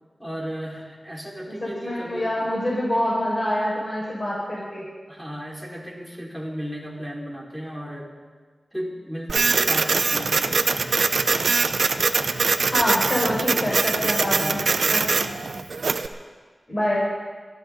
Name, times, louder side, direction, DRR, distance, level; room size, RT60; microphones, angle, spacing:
voice 1, 0.2-2.5 4.5-4.6 5.1-8.1 8.7-10.7 13.4-13.6 14.0-15.1, equal, 5° left, -3 dB, 5.0 m, -35 dB
voice 2, 1.5-4.8 12.7-14.6 14.9-15.3 16.7-17.0, left 1 dB, 40° left, -5 dB, 5.7 m, -26 dB
Printer, 9.3-16.1, right 4 dB, 85° right, 0.7 m, -22 dB
23.5 x 14.0 x 4.1 m, 1.5 s
cardioid pair, 45°, 0 cm